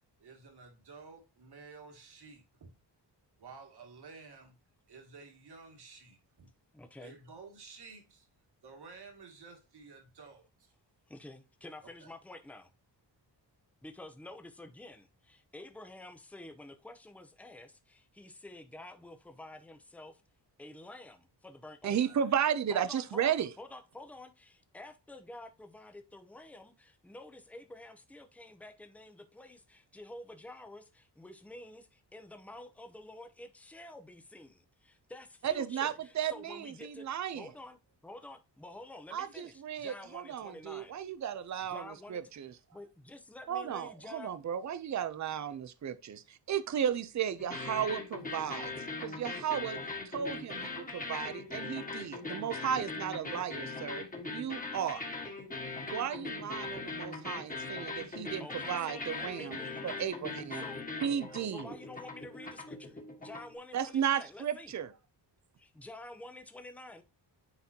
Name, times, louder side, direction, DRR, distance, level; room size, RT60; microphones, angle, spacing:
voice 1, 0.2-2.7 3.4-4.5 4.9-6.5 7.0-8.3 8.6-10.7 12.0-12.1, right 4 dB, 65° right, 2.3 m, -52 dB
voice 2, 6.7-7.2 11.1-12.7 13.8-20.2 20.6-22.0 22.7-37.1 37.3-40.9 41.6-44.3 58.4-60.0 60.4-60.8 61.5-64.8 65.6-67.0, left 2 dB, 5° left, 0.7 m, -49 dB
voice 3, 21.8-23.5 35.4-37.5 39.1-42.5 43.5-46.2 46.5-48.7 49.0-49.8 50.1-54.0 54.3-55.1 55.9-59.6 59.8-60.6 61.0-61.7 63.7-64.9, right 8 dB, 40° right, 0.6 m, -34 dB
sound 1, 47.4-63.6, left 3 dB, 20° left, 1.6 m, -40 dB
9.6 x 4.1 x 2.8 m
wide cardioid pair, 140°, 42 cm